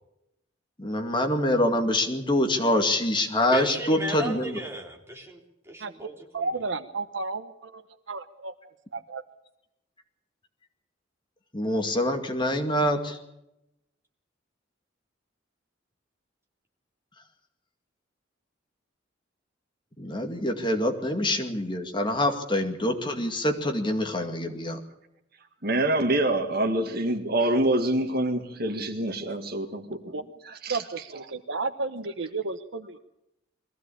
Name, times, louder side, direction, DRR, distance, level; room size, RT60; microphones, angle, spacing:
voice 1, 0.8-4.6 11.5-13.2 20.0-24.8, left 1 dB, 25° left, 5 dB, 2.2 m, -25 dB
voice 2, 3.5-6.5, right 1 dB, 15° right, 0 dB, 3.5 m, -36 dB
voice 3, 6.3-7.8 8.1-8.5 8.9-9.2 30.1-30.2 30.7-33.0, right 3 dB, 70° right, 10 dB, 1.1 m, -32 dB
voice 4, 25.6-30.1 30.5-30.8, right 1 dB, 50° right, 6 dB, 2.0 m, -26 dB
22.0 x 16.0 x 8.5 m, 0.86 s
head